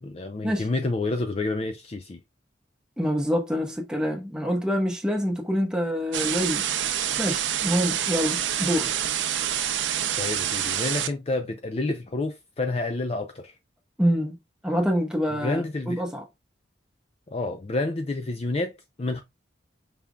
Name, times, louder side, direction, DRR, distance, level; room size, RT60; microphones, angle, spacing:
voice 1, 0.0-2.2 10.2-13.5 15.3-16.0 17.3-18.7 19.0-19.2, left 2 dB, 30° left, 0.4 m, -29 dB
voice 2, 3.0-6.7 7.2-8.9 14.0-14.4 14.6-16.2, equal, 5° right, 1.0 m, -26 dB
sound 1, 6.1-11.1, right 10 dB, 75° right, 0.6 m, -27 dB
5.0 x 3.4 x 2.2 m
head